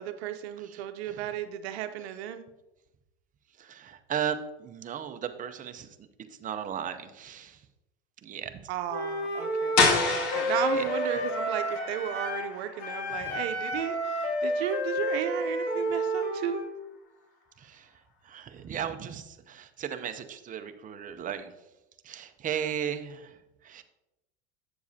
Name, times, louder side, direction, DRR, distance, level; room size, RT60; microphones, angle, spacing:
voice 1, 0.0-2.4 8.7-9.8 10.2-16.6, right 10 dB, 80° right, 8 dB, 0.7 m, -34 dB
voice 2, 0.6-1.3 3.6-7.7 8.2-8.7 10.2-10.5 10.7-10.8 11.2-11.3 17.6-21.5 22.0-23.8, right 8 dB, 25° right, 8 dB, 0.6 m, -36 dB
Wind instrument woodwind instrument, 8.9-12.5 12.8-16.7, equal, 85° left, 1.9 m, -30 dB
sound 1, 9.8-15.4, left 4 dB, 65° left, 1.9 m, -31 dB
8.5 x 6.9 x 2.7 m, 0.96 s
supercardioid pair, 120°, 32 cm